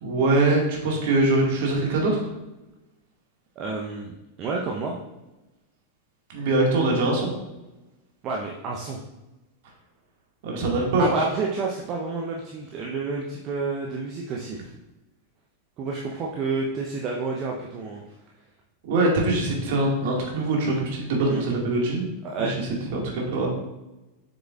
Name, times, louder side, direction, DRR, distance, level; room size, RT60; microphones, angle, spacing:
voice 1, 0.0-2.3 6.3-7.3 10.4-11.1 18.8-22.0 22.4-22.7 22.9-23.5, right 2 dB, 50° right, -1 dB, 2.0 m, -23 dB
voice 2, 3.6-5.0 8.2-9.0 11.0-14.7 15.8-18.0 21.3-21.4 22.2-22.5, right 4 dB, 35° right, -1 dB, 0.8 m, -29 dB
7.3 x 6.9 x 2.5 m, 1.0 s
figure-of-eight pair, 90°, 0 cm